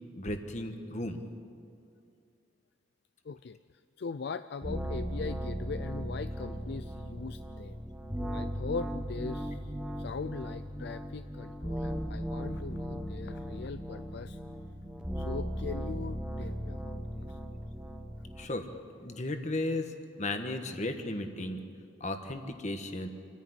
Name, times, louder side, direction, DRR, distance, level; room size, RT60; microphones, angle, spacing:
voice 1, 0.1-1.2 18.4-18.7 19.0-19.9 20.2-21.6 22.0-23.1, left 2 dB, 40° left, 6 dB, 1.4 m, -35 dB
voice 2, 3.2-7.8 8.3-14.4 15.2-17.4, left 4 dB, 60° left, 12 dB, 0.4 m, -41 dB
sound 1, 4.6-18.4, equal, 5° right, 0.9 m, -37 dB
28.0 x 10.0 x 9.5 m, 2.4 s
head